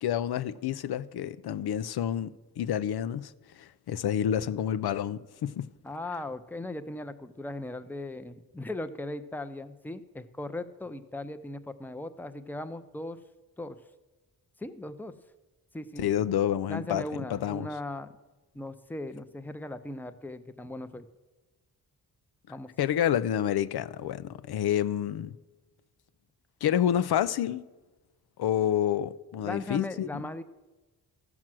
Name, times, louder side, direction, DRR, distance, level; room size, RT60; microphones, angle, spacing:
voice 1, 0.0-3.3 3.6-5.7 16.0-17.0 17.3-17.7 22.8-25.4 26.6-27.6 28.4-30.2, left 10 dB, 85° left, 0.6 m, -28 dB
voice 2, 5.8-13.2 13.6-13.8 14.6-15.1 15.7-16.0 16.7-18.1 18.5-21.1 22.5-22.7 29.4-30.4, left 2 dB, 5° left, 0.7 m, -38 dB
14.5 x 6.1 x 7.6 m
wide cardioid pair, 105°, 37 cm